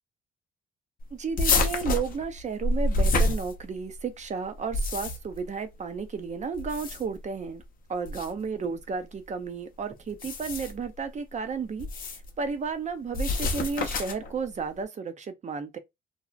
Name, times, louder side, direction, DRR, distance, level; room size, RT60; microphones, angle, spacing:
voice 1, 1.1-7.6 7.9-15.8, right 5 dB, 35° right, 0.5 m, -33 dB
sound 1, 1.4-4.0 4.6-5.4 6.5-7.2 8.1-8.3 10.1-10.9 11.8-12.3 13.1-14.3, left 2 dB, 45° left, 0.6 m, -27 dB
2.6 x 2.0 x 2.4 m
cardioid pair, 90°, 20 cm